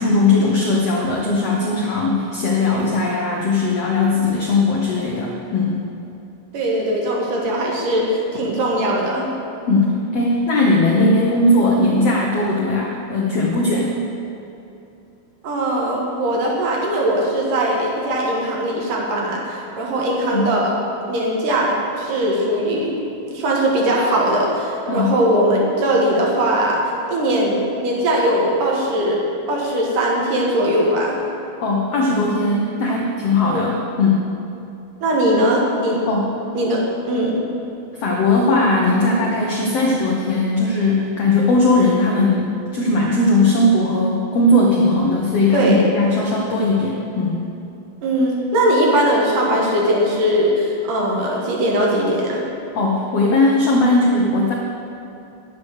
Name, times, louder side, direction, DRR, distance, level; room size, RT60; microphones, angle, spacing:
voice 1, 0.0-5.8 9.7-13.9 20.3-20.5 24.9-25.1 31.6-34.2 36.1-36.3 37.9-47.4 52.7-54.5, left 2 dB, 75° left, -2 dB, 1.4 m, -18 dB
voice 2, 6.5-9.3 15.4-20.7 21.1-22.9 23.3-26.8 27.1-29.2 29.5-31.2 33.4-33.7 35.0-36.0 36.5-36.8 37.1-37.3 45.5-45.8 48.0-52.4, right 1 dB, 65° right, -3 dB, 2.9 m, -20 dB
9.9 x 8.3 x 6.4 m, 2.8 s
omnidirectional pair, 4.2 m